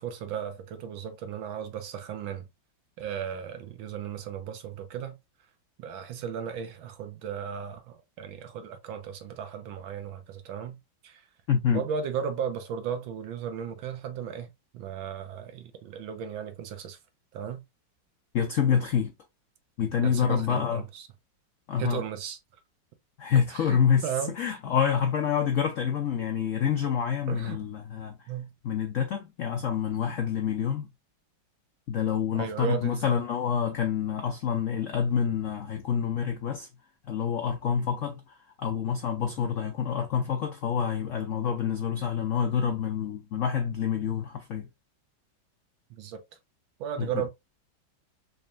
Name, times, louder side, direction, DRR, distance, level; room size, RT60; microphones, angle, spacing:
voice 1, 0.0-2.5 3.0-5.2 5.8-10.8 11.0-11.3 11.7-17.0 17.3-17.6 20.0-21.1 21.8-22.4 23.5-24.3 27.3-27.6 28.3-28.5 32.3-33.0 39.4-39.5 45.9-46.2 46.8-47.3, right 8 dB, 80° right, 1.6 m, -35 dB
voice 2, 11.5-11.8 18.3-19.1 19.8-20.8 21.7-22.0 23.2-24.0 24.4-28.2 28.6-30.9 31.9-36.7 37.1-38.2 38.6-44.7 47.0-47.1, left 7 dB, 85° left, 0.6 m, -27 dB
4.1 x 3.3 x 2.5 m
omnidirectional pair, 2.1 m